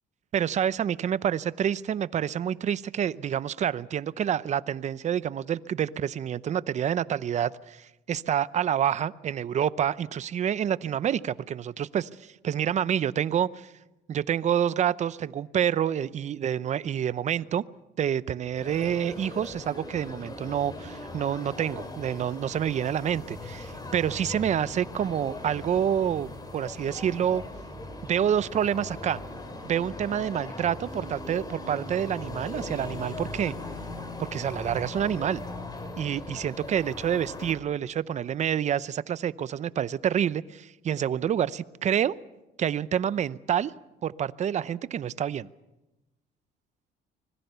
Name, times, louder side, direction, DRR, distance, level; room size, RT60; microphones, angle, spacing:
voice 1, 0.3-13.7 14.1-17.6 18.0-27.4 28.0-29.2 29.6-33.5 34.2-35.4 36.0-42.1 42.6-43.7 44.0-45.5, right 9 dB, 45° right, 17 dB, 0.7 m, -28 dB
sound 1, 18.5-37.5, left 2 dB, 25° left, 4.0 m, -39 dB
25.0 x 21.0 x 6.9 m, 1.0 s
cardioid pair, 110°, 17 cm